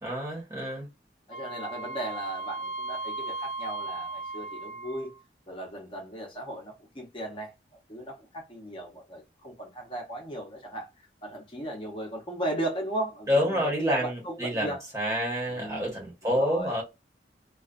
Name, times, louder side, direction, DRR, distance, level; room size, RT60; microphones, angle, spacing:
voice 1, 0.0-0.9 13.3-16.8, equal, 20° right, 1.0 m, -28 dB
Wind instrument woodwind instrument, 1.3-5.2, right 3 dB, 70° left, 0.4 m, -36 dB
voice 2, 1.3-5.1 5.5-7.5 7.9-10.9 11.2-14.8 15.5-15.9 16.2-16.7, right 1 dB, 30° left, 0.7 m, -36 dB
2.3 x 2.3 x 2.4 m
head